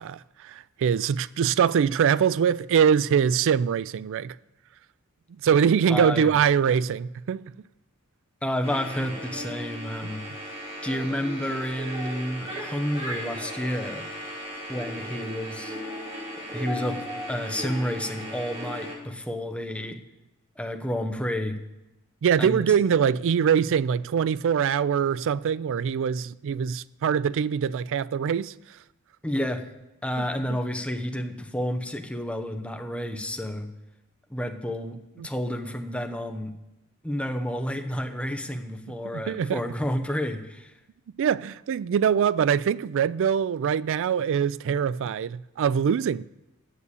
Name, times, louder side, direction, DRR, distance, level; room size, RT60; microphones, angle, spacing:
voice 1, 0.0-4.4 5.4-7.5 22.2-28.5 30.2-30.3 30.5-30.6 35.2-35.3 39.1-39.6 41.2-46.2, right 7 dB, 60° right, 0.3 m, -23 dB
voice 2, 5.9-6.3 8.4-10.2 10.8-14.1 14.7-15.8 16.5-17.0 17.3-20.0 20.6-21.6 22.4-22.7 29.2-29.6 30.0-33.7 34.3-35.0 35.2-36.5 37.0-40.7, equal, 5° left, 0.9 m, -30 dB
sound 1, 8.6-19.0, equal, 30° right, 3.0 m, -36 dB
9.8 x 6.8 x 8.2 m
head